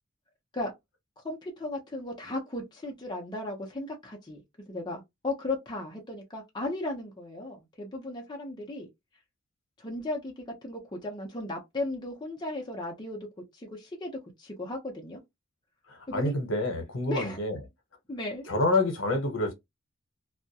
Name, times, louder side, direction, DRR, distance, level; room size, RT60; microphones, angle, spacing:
voice 1, 1.2-4.4 4.7-8.9 9.8-13.2 13.5-14.1 14.4-15.2 16.1-16.3 17.1-17.4 18.1-18.5, left 2 dB, 20° left, 0.5 m, -36 dB
voice 2, 15.9-17.6 18.4-19.5, left 2 dB, 70° left, 0.8 m, -28 dB
2.3 x 2.0 x 2.6 m
head